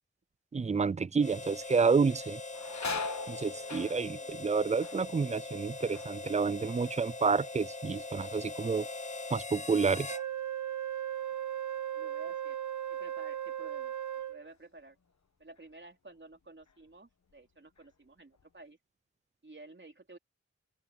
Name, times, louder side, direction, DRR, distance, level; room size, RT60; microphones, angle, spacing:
voice 1, 0.5-2.4 3.3-8.9 9.3-10.1, right 5 dB, 25° right, 0.4 m, -29 dB
Harmonica, 1.2-10.3, left 3 dB, 25° left, 0.7 m, -42 dB
sound 1, 1.6-1.7 2.0-7.6 7.9-8.5 9.0-11.9 12.3-12.4 13.4-13.6 14.0-15.1 15.6-15.7 16.3-17.0 17.3-18.4, left 4 dB, 65° left, 1.3 m, -44 dB
Wind instrument woodwind instrument, 10.1-14.5, right 11 dB, 75° right, 1.0 m, -37 dB
voice 2, 11.9-12.6 12.9-13.9 14.3-15.0 15.4-18.8 19.4-20.2, right 2 dB, 40° right, 3.7 m, -52 dB
open air
wide cardioid pair, 65°, 30 cm